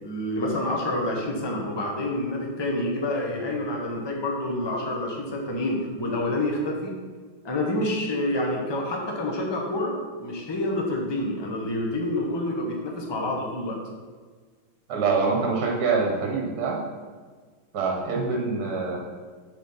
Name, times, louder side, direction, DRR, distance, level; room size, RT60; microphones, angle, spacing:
voice 1, 0.0-7.0 7.4-13.8, left 1 dB, 25° left, 0 dB, 0.6 m, -28 dB
voice 2, 14.9-16.8 17.7-19.0, right 4 dB, 55° right, 0 dB, 1.5 m, -25 dB
7.5 x 4.1 x 5.6 m, 1.5 s
omnidirectional pair, 2.2 m